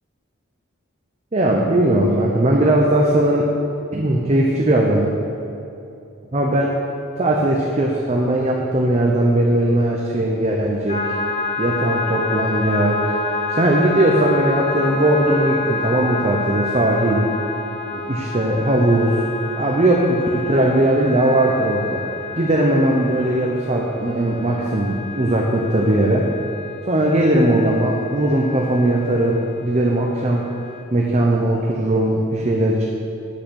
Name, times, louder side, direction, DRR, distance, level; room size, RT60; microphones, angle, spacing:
voice 1, 1.3-3.5 3.9-5.1 6.3-6.8 7.2-11.2 11.6-13.2 13.5-17.3 17.9-19.2 19.6-22.0 22.4-26.3 26.9-30.4 30.9-32.8, right 1 dB, 30° right, -2 dB, 0.7 m, -19 dB
sound 1, 10.9-29.6 30.0-30.8, left 3 dB, 30° left, 0.5 m, -28 dB
8.2 x 6.3 x 6.3 m, 2.7 s
head